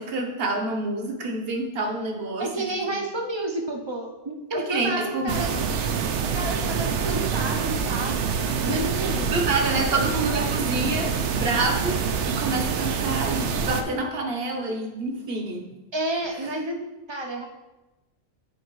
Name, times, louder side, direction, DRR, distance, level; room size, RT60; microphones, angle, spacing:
voice 1, 0.0-2.5 2.9-3.0 4.5-5.5 8.6-15.7 16.4-16.5, right 2 dB, 60° right, 2 dB, 1.1 m, -28 dB
voice 2, 2.4-5.5 6.3-8.2 8.7-9.3 9.7-9.8 15.9-16.8 17.1-17.4, right 2 dB, 30° right, 2 dB, 0.6 m, -30 dB
sound 1, 5.3-13.8, right 6 dB, 80° right, 0.9 m, -26 dB
9.3 x 4.4 x 3.1 m, 1.1 s
omnidirectional pair, 1.2 m